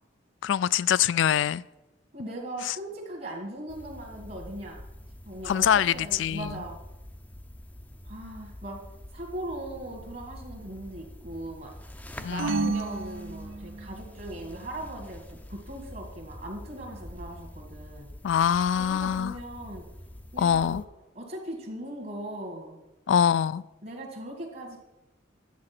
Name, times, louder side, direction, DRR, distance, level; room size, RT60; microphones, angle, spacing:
voice 1, 0.4-1.6 2.6-2.8 5.5-6.6 12.2-12.7 18.2-19.3 20.4-20.8 23.1-23.6, left 9 dB, 70° left, 0.3 m, -24 dB
voice 2, 2.1-4.8 5.3-6.8 8.0-8.8 9.1-11.7 12.3-18.1 18.7-19.9 20.3-20.8 21.2-22.8 23.8-24.8, right 1 dB, 50° right, 1.9 m, -39 dB
sound 1, 3.7-20.8, left 1 dB, 10° left, 0.6 m, -46 dB
sound 2, 12.4-14.1, right 4 dB, 75° right, 0.4 m, -31 dB
10.5 x 7.5 x 5.9 m
head